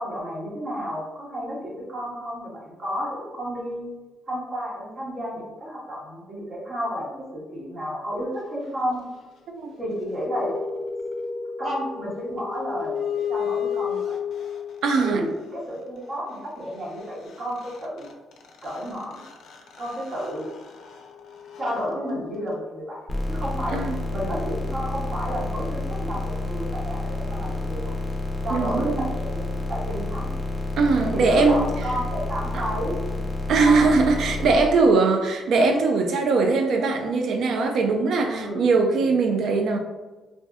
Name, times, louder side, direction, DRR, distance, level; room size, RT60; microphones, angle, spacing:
voice 1, 0.0-3.9 4.3-9.1 9.8-10.5 11.6-14.2 14.9-18.1 18.6-19.2 19.8-20.5 21.6-23.8 24.1-28.0 28.4-30.3 31.1-33.2 33.6-33.9 38.2-39.1, equal, 50° right, -6 dB, 1.1 m, -31 dB
sound 1, 9.7-15.1 17.0-17.1 17.3-22.8, left 7 dB, 70° left, 0.4 m, -33 dB
voice 2, 14.8-15.2 23.7-24.0 28.5-29.1 30.8-31.6 32.5-32.6 33.5-39.8, right 4 dB, 70° right, 4 dB, 0.3 m, -21 dB
sound 2, 23.1-34.6, left 1 dB, 20° left, 0.6 m, -29 dB
2.5 x 2.1 x 3.3 m, 1.2 s
cardioid pair, 90°, 0 cm